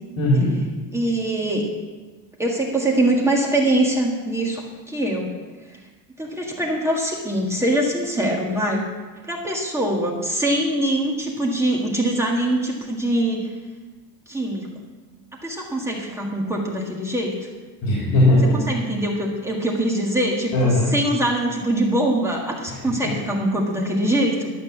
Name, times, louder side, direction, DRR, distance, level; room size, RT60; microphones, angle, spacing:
voice 1, 0.2-0.5 17.8-18.6 20.5-21.0 22.7-23.1, left 1 dB, 70° left, -5 dB, 3.7 m, -18 dB
voice 2, 0.9-1.7 2.4-5.3 6.2-8.9 9.3-13.5 14.3-14.7 15.4-17.3 18.5-24.5, right 1 dB, 10° right, -2 dB, 1.8 m, -23 dB
12.0 x 7.4 x 7.2 m, 1.3 s
cardioid pair, 145°, 34 cm